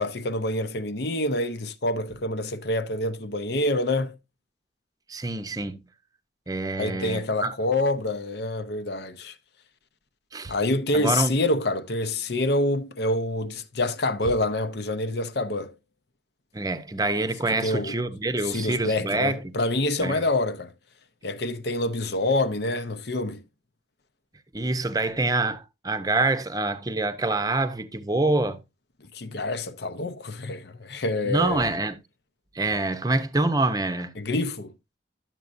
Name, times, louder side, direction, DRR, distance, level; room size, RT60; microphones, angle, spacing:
voice 1, 0.0-4.1 6.8-9.3 10.5-15.8 17.5-17.9 18.4-20.7 21.2-23.4 29.1-31.7 34.2-34.7, left 2 dB, 65° left, 0.8 m, -27 dB
voice 2, 5.1-5.8 6.5-7.5 10.3-10.5 10.9-11.4 16.5-19.5 20.0-20.2 24.5-28.6 31.2-32.0 32.5-34.1, right 2 dB, 20° right, 0.7 m, -26 dB
11.0 x 7.5 x 2.6 m
head